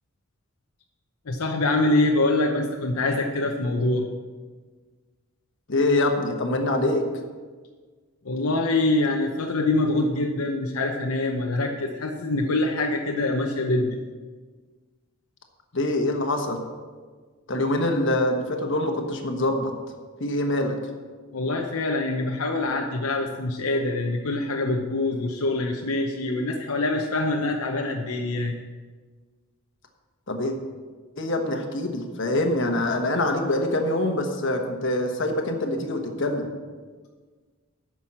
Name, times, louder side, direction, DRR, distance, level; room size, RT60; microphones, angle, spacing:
voice 1, 1.3-4.1 8.2-14.0 21.3-28.6, left 2 dB, 80° left, 2 dB, 0.8 m, -25 dB
voice 2, 5.7-7.0 15.7-16.6 17.5-19.7 20.2-20.7 30.3-30.5 31.2-36.5, left 1 dB, 55° left, 4 dB, 1.3 m, -24 dB
9.8 x 6.3 x 7.4 m, 1.5 s
head